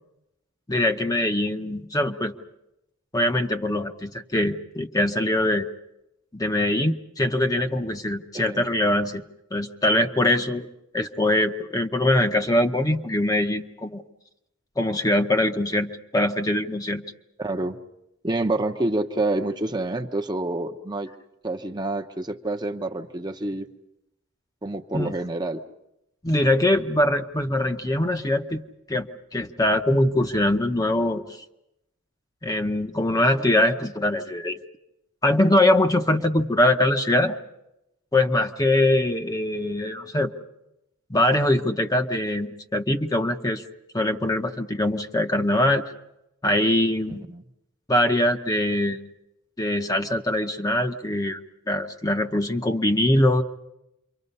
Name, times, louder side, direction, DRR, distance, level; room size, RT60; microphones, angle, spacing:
voice 1, 0.7-2.3 3.1-5.7 6.3-9.2 9.5-10.7 10.9-14.0 14.8-17.0 24.9-25.2 26.2-28.6 28.9-31.2 32.4-34.6 35.2-37.4 38.1-40.3 41.1-43.6 43.9-45.9 46.4-47.2 47.9-49.1 49.6-51.4 51.7-53.4, left 1 dB, 20° left, 5 dB, 0.8 m, -22 dB
voice 2, 8.3-8.7 17.4-17.8 18.2-21.1 21.4-23.7 24.6-25.6 47.1-47.4, right 2 dB, 20° right, 4 dB, 0.8 m, -28 dB
28.0 x 24.0 x 5.5 m, 0.88 s
head